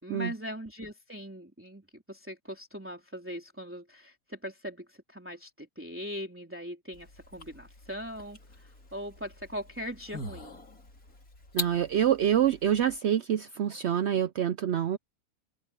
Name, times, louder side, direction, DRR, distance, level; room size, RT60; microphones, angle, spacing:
voice 1, 0.0-10.6, equal, 10° right, 3.4 m, -40 dB
sound 1, 6.9-13.0, left 2 dB, 65° left, 4.6 m, -43 dB
voice 2, 11.5-15.0, right 10 dB, 70° right, 0.6 m, -26 dB
open air
omnidirectional pair, 1.6 m